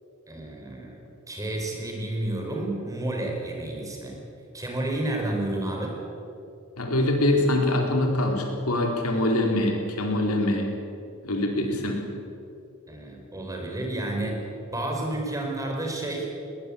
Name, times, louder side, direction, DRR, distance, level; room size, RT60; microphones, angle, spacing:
voice 1, 0.3-1.0 1.3-4.1 4.5-5.9 12.9-16.3, right 1 dB, 15° right, 0 dB, 4.5 m, -30 dB
voice 2, 6.8-10.7 11.2-12.0, left 1 dB, 85° left, 2 dB, 4.0 m, -24 dB
21.5 x 19.0 x 8.5 m, 2.7 s
head